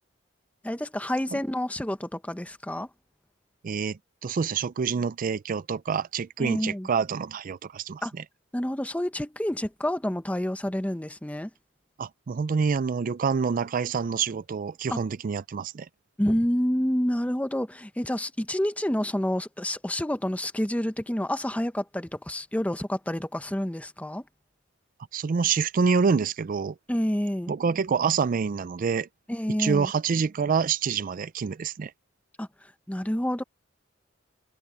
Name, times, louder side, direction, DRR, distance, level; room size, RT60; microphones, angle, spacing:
voice 1, 0.6-2.9 6.4-6.9 8.0-8.1 8.5-11.5 14.9-15.0 16.2-24.2 26.9-27.5 29.3-29.9 32.4-33.4, equal, 5° left, 0.7 m, -28 dB
voice 2, 3.6-8.0 12.0-15.9 25.1-26.7 27.5-29.1 29.6-31.9, right 5 dB, 45° right, 0.4 m, -27 dB
head